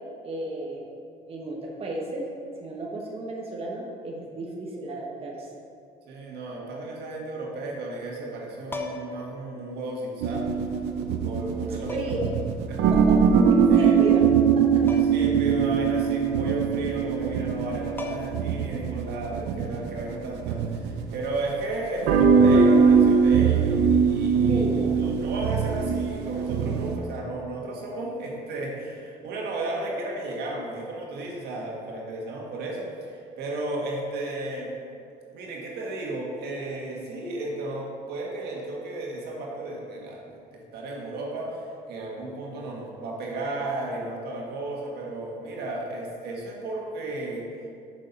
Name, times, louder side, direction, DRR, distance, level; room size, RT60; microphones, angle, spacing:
voice 1, 0.2-0.8 1.3-2.3 2.6-5.5 11.9-12.2 12.9-13.2 13.6-14.2 14.5-15.0 24.5-24.9, right 2 dB, 35° right, -2 dB, 1.2 m, -33 dB
voice 2, 6.1-10.5 11.2-12.0 12.7-12.9 13.7-13.9 14.8-24.6 25.0-34.7 35.3-47.5, right 2 dB, 75° right, -2 dB, 1.8 m, -34 dB
sound 1, 8.7-9.3 10.6-10.7 11.9-12.3 14.9-15.3 15.6-15.7 17.6-17.7 18.0-18.6 20.5-20.7, left 3 dB, 15° left, 0.7 m, -37 dB
sound 2, 10.2-21.4 22.0-27.0, right 6 dB, 90° right, 0.7 m, -21 dB
6.8 x 6.3 x 5.4 m, 2.3 s
cardioid pair, 110°, 17 cm